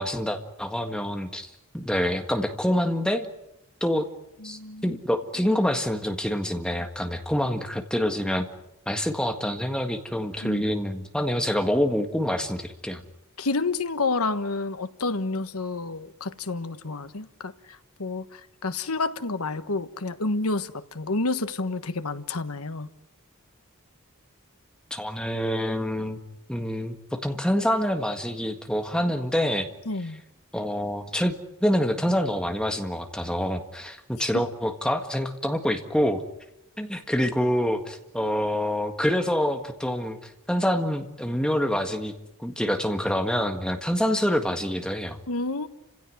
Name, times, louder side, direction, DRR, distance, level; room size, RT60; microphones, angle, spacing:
voice 1, 0.0-3.3 3.8-4.1 4.4-8.5 8.8-13.0 24.9-26.2 26.5-29.7 30.5-31.3 31.6-36.2 36.8-42.1 42.4-45.2, equal, 5° left, 1.7 m, -26 dB
voice 2, 4.4-5.0 10.4-10.6 13.4-22.9 29.9-30.2 34.3-34.4 45.3-45.7, left 3 dB, 90° left, 1.3 m, -29 dB
29.5 x 16.5 x 9.3 m
head